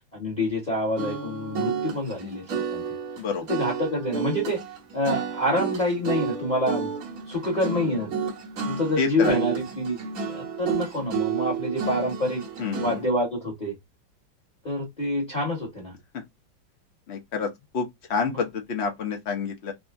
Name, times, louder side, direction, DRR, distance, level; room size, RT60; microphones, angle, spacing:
voice 1, 0.1-2.8 3.5-4.6 4.9-6.9 7.3-8.1 8.6-10.0 10.3-12.4 12.8-13.8 14.6-15.9 18.2-18.4, left 1 dB, 25° left, 1.1 m, -27 dB
sound 1, 1.0-13.1, right 6 dB, 55° right, 1.2 m, -31 dB
voice 2, 9.0-9.3 12.6-13.0 17.1-17.5 17.7-19.7, left 5 dB, 50° left, 0.8 m, -28 dB
3.6 x 2.0 x 2.4 m
omnidirectional pair, 2.0 m